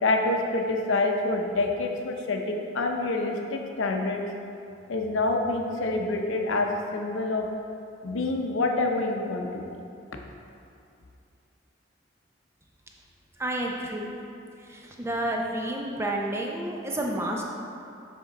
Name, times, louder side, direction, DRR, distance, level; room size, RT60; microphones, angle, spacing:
voice 1, 0.0-4.2 4.9-7.5 8.0-9.6, left 2 dB, 85° left, 2 dB, 0.6 m, -27 dB
voice 2, 13.4-14.3 14.7-17.4, right 1 dB, 15° right, 0 dB, 0.5 m, -30 dB
7.4 x 3.7 x 4.0 m, 2.6 s
head